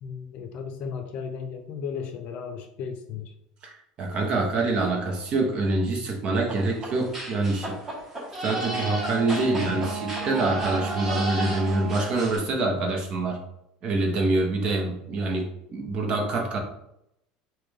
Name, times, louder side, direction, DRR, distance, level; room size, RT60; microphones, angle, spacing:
voice 1, 0.0-3.3 9.5-9.9, left 6 dB, 50° left, 6 dB, 0.7 m, -35 dB
voice 2, 4.0-7.7 8.4-13.4 13.8-16.6, right 2 dB, 40° right, 1 dB, 1.0 m, -25 dB
sound 1, 6.5-12.4, right 2 dB, 15° right, 1.3 m, -34 dB
Wind instrument woodwind instrument, 8.6-12.3, right 5 dB, 80° right, 0.4 m, -35 dB
5.8 x 2.4 x 3.4 m, 0.80 s
cardioid pair, 145°, 3 cm